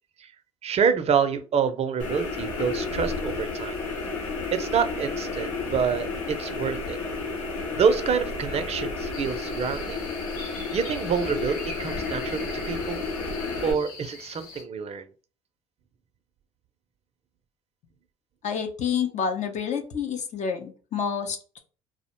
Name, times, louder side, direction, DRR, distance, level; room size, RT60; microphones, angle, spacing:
voice 1, 0.6-3.8 4.5-7.0 7.7-10.0 10.7-13.0 13.6-15.1, right 6 dB, 40° right, 10 dB, 0.5 m, -27 dB
sound 1, 2.0-13.7, left 3 dB, 85° left, 0.8 m, -32 dB
sound 2, 9.1-14.6, left 3 dB, 60° left, 1.0 m, -42 dB
voice 2, 18.4-21.6, left 7 dB, 45° left, 5 dB, 0.6 m, -29 dB
2.4 x 2.1 x 2.9 m, 0.36 s
hypercardioid pair, 65°, 17 cm